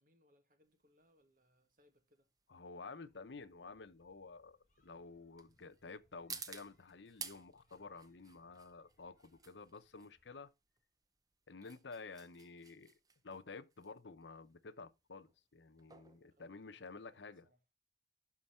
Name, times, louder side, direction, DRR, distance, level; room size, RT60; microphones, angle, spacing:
voice 1, 0.0-2.3 16.3-17.6, equal, 50° right, 1.8 m, -73 dB
sound 1, 0.7-17.3, right 6 dB, 20° right, 0.7 m, -55 dB
voice 2, 2.5-4.6 4.8-10.5 11.5-12.9 13.2-17.5, left 4 dB, 90° left, 0.8 m, -51 dB
sound 2, 3.0-10.5, equal, 45° left, 6.2 m, -78 dB
12.0 x 4.6 x 4.3 m
head